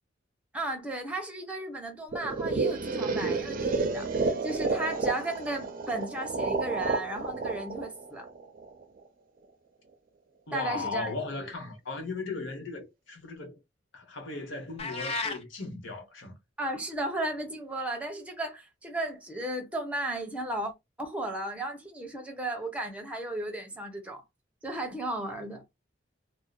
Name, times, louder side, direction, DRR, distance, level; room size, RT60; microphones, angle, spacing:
voice 1, 0.5-8.3 10.5-11.1 16.6-20.7 21.0-24.2 24.6-25.6, right 1 dB, 5° right, 0.7 m, -35 dB
sound 1, 2.1-9.0, right 3 dB, 50° right, 0.5 m, -31 dB
voice 2, 10.5-13.6 13.9-16.3, left 3 dB, 75° left, 1.0 m, -37 dB
sound 2, 14.8-15.4, left 3 dB, 30° left, 0.4 m, -32 dB
2.6 x 2.0 x 2.3 m
head